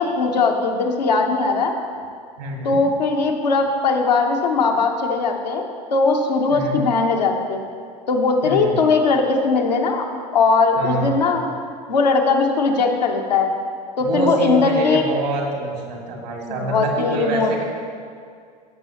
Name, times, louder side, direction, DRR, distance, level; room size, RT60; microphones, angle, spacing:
voice 1, 0.0-1.7 2.6-5.6 5.9-7.6 8.1-10.1 10.3-11.4 11.9-13.5 14.0-15.0 16.6-17.6, left 4 dB, 80° left, 2 dB, 1.0 m, -19 dB
voice 2, 2.4-2.8 6.5-6.8 8.4-8.7 10.8-11.4 14.0-17.6, right 2 dB, 70° right, 0 dB, 2.2 m, -26 dB
15.0 x 6.2 x 3.0 m, 2.2 s
hypercardioid pair, 85°, 21 cm